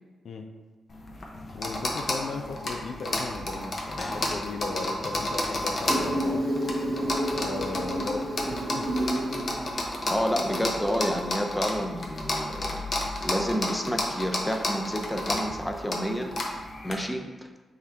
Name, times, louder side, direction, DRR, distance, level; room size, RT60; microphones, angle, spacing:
sound 1, 0.9-16.9, left 1 dB, 50° left, 0.8 m, -32 dB
voice 1, 1.5-6.5 7.0-9.0, left 3 dB, 70° left, 4 dB, 0.4 m, -36 dB
Insect, 5.9-10.8, right 1 dB, 45° right, 0.8 m, -31 dB
voice 2, 10.0-12.9 13.2-17.6, equal, 10° left, 4 dB, 0.6 m, -30 dB
4.3 x 3.5 x 3.4 m, 1.3 s
cardioid pair, 60°, 0 cm